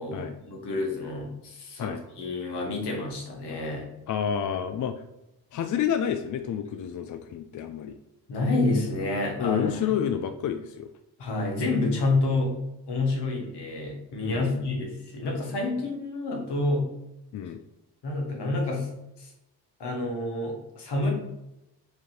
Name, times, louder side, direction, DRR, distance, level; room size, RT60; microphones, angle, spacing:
voice 1, 0.0-3.9 8.3-10.0 11.2-12.5 12.9-16.9 18.0-18.9 19.2-19.3 19.8-21.1, left 2 dB, 75° left, 1 dB, 1.2 m, -28 dB
voice 2, 4.1-5.0 5.5-8.0 9.4-10.9 14.2-14.6 17.3-17.6, left 8 dB, 50° left, 7 dB, 0.4 m, -29 dB
4.9 x 2.8 x 3.1 m, 0.89 s
supercardioid pair, 45°, 41 cm